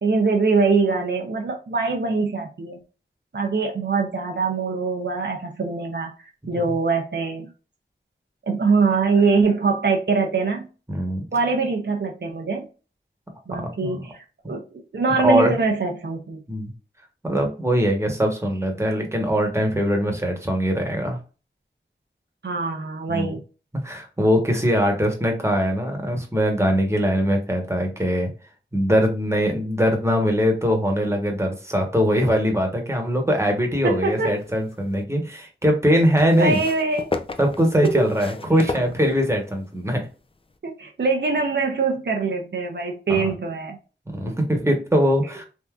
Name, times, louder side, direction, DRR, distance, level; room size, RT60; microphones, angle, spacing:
voice 1, 0.0-2.8 3.3-7.5 8.5-10.7 11.3-12.7 13.5-16.4 22.4-23.4 33.8-34.4 36.4-37.1 37.8-37.9 38.6-38.7 40.6-43.8, right 4 dB, 65° right, 0.6 m, -23 dB
voice 2, 10.9-11.2 13.8-14.1 15.2-15.6 16.5-16.7 17.2-21.2 23.1-23.3 23.8-28.3 28.7-36.6 37.4-40.0 43.1-43.3 44.1-45.4, equal, 15° right, 1.0 m, -21 dB
sound 1, 34.2-35.0 36.1-39.6 40.5-40.6, left 3 dB, 30° left, 0.4 m, -33 dB
3.5 x 2.6 x 2.3 m
wide cardioid pair, 55°, 20 cm